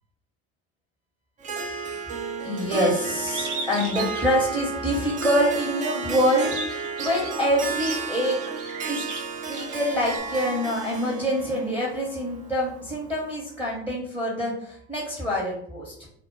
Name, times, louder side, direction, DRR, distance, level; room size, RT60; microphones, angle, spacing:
Harp, 1.4-13.2, right 4 dB, 20° right, 0.4 m, -33 dB
voice 1, 2.4-8.4 8.9-9.1 9.4-16.1, equal, 5° right, -3 dB, 0.7 m, -26 dB
Bird, 3.3-5.2 5.7-10.2, right 4 dB, 70° right, 0.5 m, -37 dB
2.0 x 2.0 x 3.0 m, 0.62 s
figure-of-eight pair, 65°, 37 cm